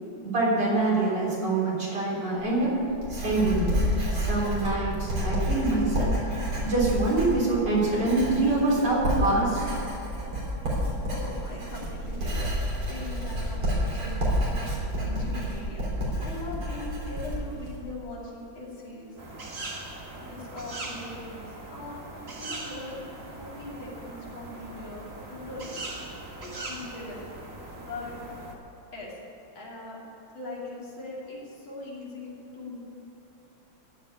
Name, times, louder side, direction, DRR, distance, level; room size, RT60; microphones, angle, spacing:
voice 1, 0.2-2.8 3.1-3.8 4.1-6.2 6.6-9.6, right 2 dB, 55° right, -6 dB, 4.3 m, -25 dB
Writing, 2.4-17.8, equal, 85° right, 4.1 m, -30 dB
voice 2, 11.0-19.2 20.2-22.0 22.4-23.0 23.3-25.9 26.4-27.3 27.8-28.1 28.9-29.1 29.5-30.0 30.3-32.8, left 2 dB, 75° left, -7 dB, 3.7 m, -40 dB
sound 1, 19.2-28.5, right 2 dB, 35° right, 1.6 m, -40 dB
15.5 x 5.5 x 10.0 m, 3.0 s
omnidirectional pair, 2.2 m